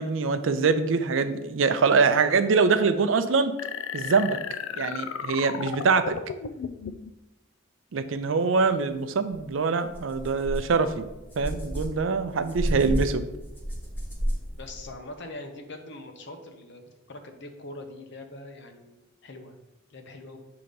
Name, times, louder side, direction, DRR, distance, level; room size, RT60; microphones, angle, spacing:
voice 1, 0.0-3.5 3.9-4.4 4.8-6.2 7.9-11.1 11.4-13.3, right 4 dB, 70° right, 10 dB, 0.5 m, -24 dB
sound 1, 3.6-7.1, left 7 dB, 90° left, 0.4 m, -34 dB
sound 2, 9.3-9.4 9.9-14.9, equal, 10° left, 1.2 m, -32 dB
voice 2, 14.6-16.8 17.1-19.6 19.9-20.4, left 2 dB, 60° left, 5 dB, 0.8 m, -42 dB
6.4 x 2.9 x 5.2 m, 0.98 s
head